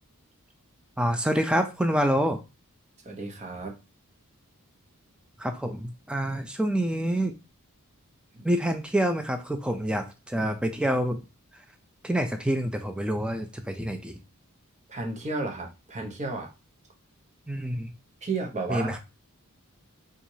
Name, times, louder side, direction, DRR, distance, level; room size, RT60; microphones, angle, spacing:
voice 1, 1.0-2.4 5.4-7.3 8.4-11.2 12.0-14.2 17.5-17.9 18.7-19.0, right 1 dB, 5° right, 6 dB, 0.5 m, -27 dB
voice 2, 3.0-3.8 8.3-8.4 14.9-16.5 18.2-19.0, right 3 dB, 30° right, 1 dB, 0.9 m, -33 dB
4.6 x 2.4 x 2.7 m, 0.27 s
head